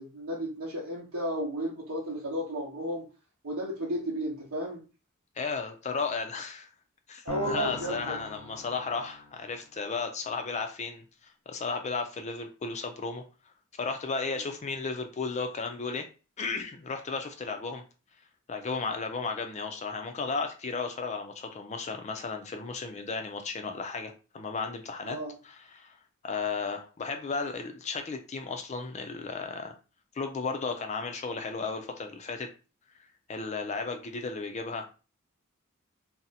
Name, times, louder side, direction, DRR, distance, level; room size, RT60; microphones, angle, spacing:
voice 1, 0.0-3.1 3.4-4.8 7.2-8.2 14.3-14.4 25.0-25.3, equal, 85° right, -4 dB, 0.8 m, -33 dB
voice 2, 5.4-6.7 7.1-13.2 13.8-16.1 16.4-17.8 18.5-25.2 25.4-26.0 26.2-29.7 30.1-32.5 33.3-34.9, left 4 dB, 35° left, 5 dB, 0.4 m, -34 dB
sound 1, 7.3-9.7, left 3 dB, 80° left, 0.9 m, -42 dB
2.6 x 2.1 x 4.0 m, 0.34 s
head